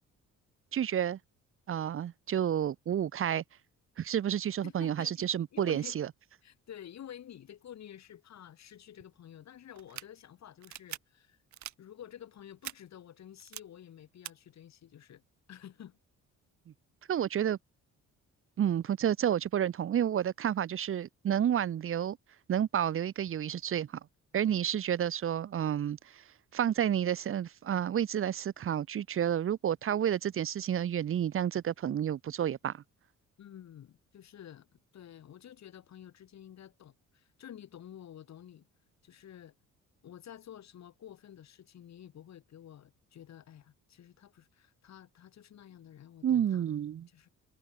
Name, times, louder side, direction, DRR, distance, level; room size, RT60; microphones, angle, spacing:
voice 1, 0.7-1.2 1.7-3.4 4.0-6.1 17.1-17.6 18.6-22.2 22.5-23.9 24.3-26.2 26.5-32.7 46.2-47.1, right 9 dB, 45° right, 0.8 m, -30 dB
voice 2, 4.6-6.0 6.4-11.4 11.8-15.2 15.5-16.0 33.4-34.7 34.9-38.7 39.0-39.5 40.0-46.7 47.1-47.3, left 10 dB, 60° left, 2.8 m, -50 dB
sound 1, 9.8-10.0 10.6-11.0 11.5-11.7 12.6-12.7 13.4-13.6 14.2-14.3, right 13 dB, 70° right, 1.2 m, -42 dB
cardioid pair, 90°, 30 cm